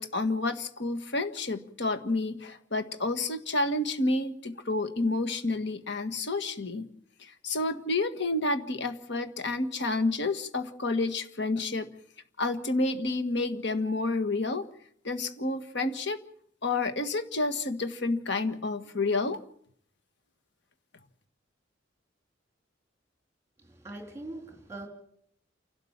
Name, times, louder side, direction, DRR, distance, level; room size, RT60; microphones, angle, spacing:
voice 1, 0.0-6.9 7.2-11.9 12.4-14.7 15.0-16.2 16.6-19.4, left 2 dB, 65° left, 9 dB, 1.7 m, -29 dB
voice 2, 23.6-24.9, right 2 dB, 15° right, 3 dB, 3.3 m, -42 dB
29.0 x 12.5 x 7.3 m, 0.68 s
head